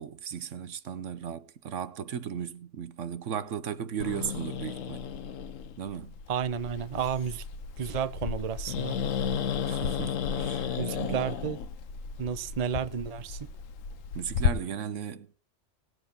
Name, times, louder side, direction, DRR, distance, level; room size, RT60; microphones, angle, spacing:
voice 1, 0.0-5.0 5.8-6.1 9.7-11.3 14.1-15.3, right 8 dB, 75° right, 1.2 m, -36 dB
Growling, 4.0-14.5, left 7 dB, 85° left, 1.2 m, -33 dB
voice 2, 6.3-7.4 7.8-9.0 10.8-11.6 12.2-13.5, right 8 dB, 40° right, 0.6 m, -32 dB
18.5 x 8.0 x 4.0 m
omnidirectional pair, 1.3 m